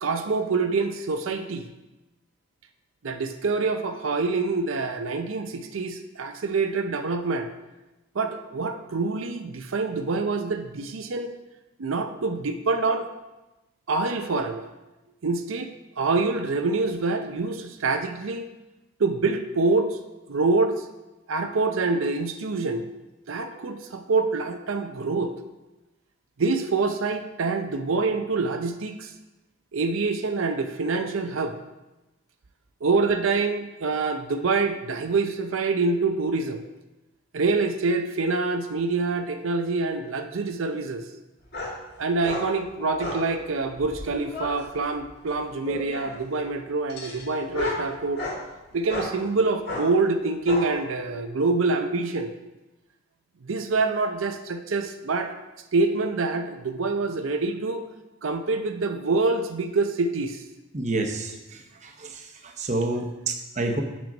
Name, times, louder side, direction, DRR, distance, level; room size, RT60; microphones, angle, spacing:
voice 1, 0.0-1.7 3.0-7.5 8.1-11.3 11.8-13.1 13.9-14.7 15.2-18.5 19.0-20.0 20.3-20.9 21.3-22.8 23.3-25.3 26.4-29.1 29.7-31.6 32.8-36.6 37.3-41.0 42.0-48.2 48.7-52.3 53.4-55.3 55.7-57.8 58.2-60.4, right 3 dB, 85° right, 7 dB, 0.6 m, -26 dB
sound 1, 41.5-41.8 42.2-42.5 43.0-43.3 43.8-44.6 45.6-46.2 46.9-48.4 48.9-49.1 49.7-49.9 50.5-50.7, left 2 dB, 50° left, 2.2 m, -32 dB
voice 2, 60.7-61.3 62.6-63.8, right 2 dB, 35° right, 4 dB, 0.8 m, -27 dB
7.4 x 6.1 x 5.2 m, 1.0 s
head